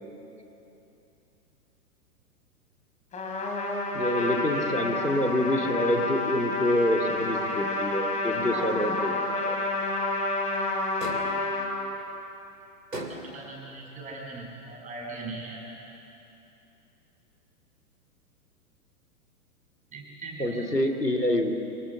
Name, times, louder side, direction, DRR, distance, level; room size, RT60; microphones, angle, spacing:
Trumpet, 3.1-11.7, left 2 dB, 15° left, 3.7 m, -29 dB
voice 1, 3.9-9.1 9.4-9.6 20.4-21.5, left 1 dB, 90° left, 3 dB, 2.6 m, -26 dB
sound 1, 11.0-11.5 12.9-13.5, right 1 dB, 85° right, 3.1 m, -37 dB
voice 2, 13.3-15.6 19.9-20.5, right 3 dB, 15° right, -2 dB, 7.1 m, -40 dB
26.0 x 23.5 x 7.7 m, 2.9 s
figure-of-eight pair, 110°, 47 cm